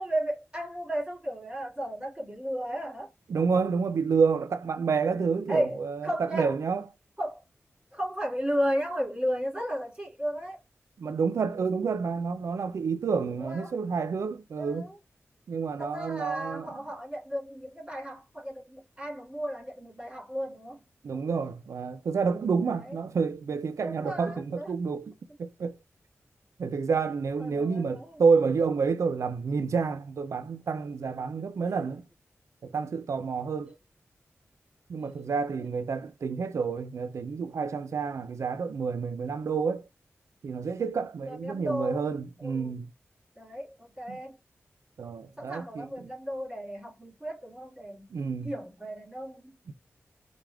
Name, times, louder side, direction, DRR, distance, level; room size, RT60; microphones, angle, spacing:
voice 1, 0.0-3.1 5.5-6.6 7.2-7.4 7.9-10.6 13.4-13.7 14.6-15.0 15.8-20.8 22.6-23.0 23.8-24.7 25.3-25.4 27.4-28.2 35.0-35.2 41.2-42.1 42.4-42.8 43.4-44.4 45.4-48.0 48.4-49.5, equal, 15° right, 2.4 m, -34 dB
voice 2, 3.3-6.9 11.0-14.9 15.5-16.7 21.0-25.1 25.4-25.7 26.6-32.0 32.6-33.7 34.9-39.8 40.4-42.9 44.1-44.2 45.0-45.9 48.1-48.5 49.7-49.8, right 5 dB, 80° right, 0.4 m, -29 dB
4.7 x 2.1 x 3.4 m
wide cardioid pair, 70°, 5 cm